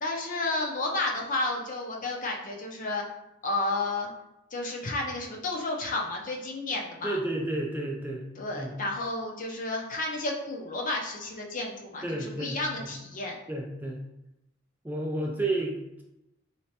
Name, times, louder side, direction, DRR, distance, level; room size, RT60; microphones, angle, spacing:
voice 1, 0.0-3.0 3.4-4.1 4.5-7.2 8.4-13.4, left 2 dB, 45° left, 0 dB, 0.6 m, -31 dB
voice 2, 7.0-8.2 8.6-8.7 12.0-12.9 13.5-14.0 14.8-16.0, right 2 dB, 10° right, -1 dB, 0.4 m, -31 dB
3.3 x 3.2 x 2.8 m, 0.90 s
head